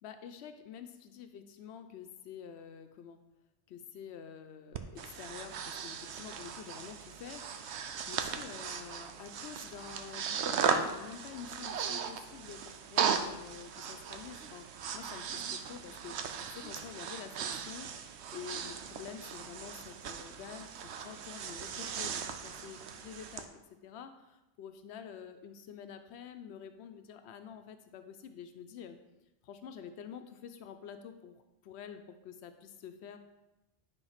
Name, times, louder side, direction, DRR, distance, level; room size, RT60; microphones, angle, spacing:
voice 1, 0.0-3.2 3.7-23.5 23.8-29.0 29.4-33.2, left 8 dB, 90° left, 8 dB, 0.9 m, -48 dB
Breathing, 4.7-23.5, right 6 dB, 90° right, 0.9 m, -37 dB
10.0 x 3.8 x 5.7 m, 0.98 s
omnidirectional pair, 1.1 m